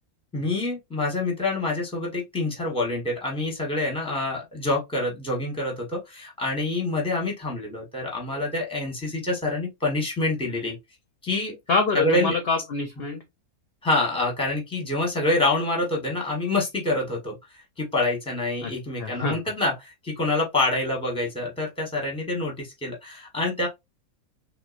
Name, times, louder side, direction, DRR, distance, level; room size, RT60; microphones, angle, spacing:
voice 1, 0.3-10.8 11.2-11.6 11.9-12.4 13.8-17.3 17.8-23.7, left 2 dB, 5° left, 0.8 m, -26 dB
voice 2, 11.7-13.2 18.6-18.7 19.0-19.4, left 4 dB, 55° left, 0.7 m, -25 dB
3.7 x 2.4 x 2.4 m
omnidirectional pair, 1.5 m